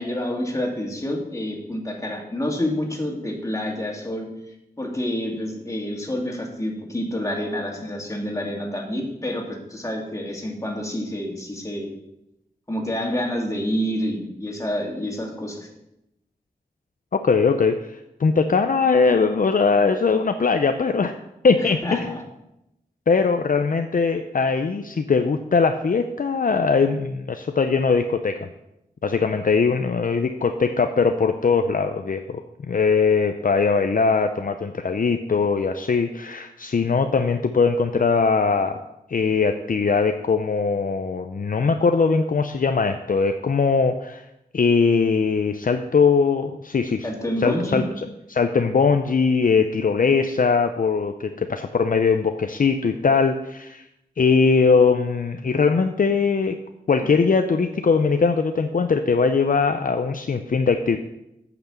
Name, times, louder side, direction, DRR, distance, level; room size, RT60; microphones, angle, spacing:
voice 1, 0.0-4.3 4.8-11.9 12.7-15.7 21.6-22.2 47.0-47.8, left 1 dB, 20° left, 0 dB, 2.4 m, -28 dB
voice 2, 17.1-17.9 18.2-21.1 21.4-22.2 23.1-28.5 29.0-32.4 32.7-38.8 39.1-44.2 44.5-47.1 47.4-47.8 48.3-53.8 54.2-56.6 56.9-61.0, left 5 dB, 60° left, 7 dB, 0.6 m, -20 dB
8.8 x 6.0 x 7.3 m, 0.86 s
wide cardioid pair, 75°, 16 cm